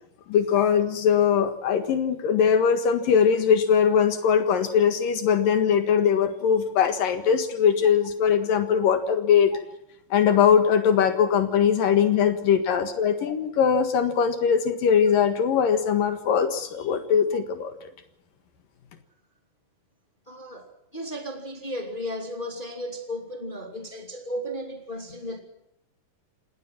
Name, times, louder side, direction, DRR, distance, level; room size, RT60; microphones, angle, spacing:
voice 1, 0.3-9.5 10.1-17.7, left 7 dB, 75° left, 8 dB, 3.4 m, -21 dB
voice 2, 20.3-25.4, equal, 15° left, 3 dB, 2.6 m, -35 dB
28.0 x 18.5 x 6.1 m, 0.78 s
omnidirectional pair, 3.9 m